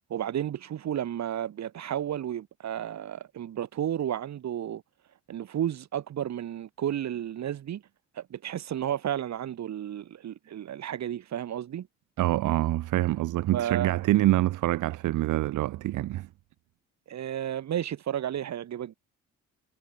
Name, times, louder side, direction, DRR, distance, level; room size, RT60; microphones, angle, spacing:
voice 1, 0.1-4.8 5.3-7.8 8.2-11.9 13.5-14.0 17.1-18.9, right 10 dB, 65° right, 2.3 m, -32 dB
voice 2, 12.2-16.3, right 16 dB, 90° right, 2.5 m, -25 dB
cardioid pair, 90°, 30 cm